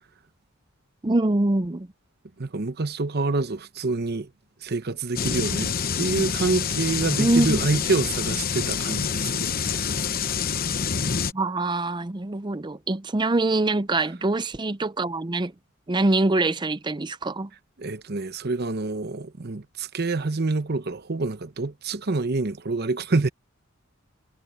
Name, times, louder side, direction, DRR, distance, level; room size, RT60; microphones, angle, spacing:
voice 1, 1.0-1.9 7.2-7.6 11.3-15.5 15.9-17.5, right 2 dB, 20° right, 0.6 m, -24 dB
voice 2, 2.4-4.3 4.6-9.9 17.8-23.3, right 3 dB, 50° right, 0.9 m, -27 dB
sound 1, 5.2-11.3, left 6 dB, 45° left, 0.9 m, -27 dB
head